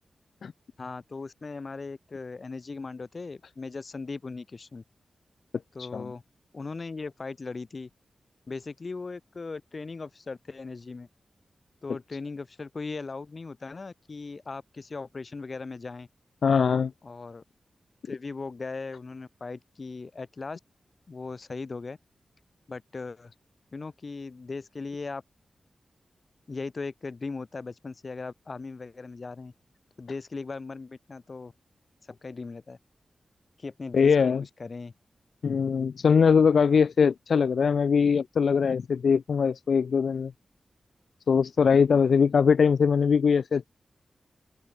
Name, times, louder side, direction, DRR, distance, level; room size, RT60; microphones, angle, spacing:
voice 1, 0.8-4.8 5.7-6.2 6.5-7.9 8.5-11.1 11.8-16.1 17.0-17.4 18.0-20.6 21.1-22.0 22.7-23.3 23.7-25.2 26.5-29.5 30.0-31.5 32.1-32.8 33.6-34.9, left 4 dB, 45° left, 3.9 m, -38 dB
voice 2, 16.4-16.9 33.9-34.4 35.4-40.3 41.3-43.6, left 6 dB, 80° left, 0.3 m, -22 dB
open air
wide cardioid pair, 95°, 0 cm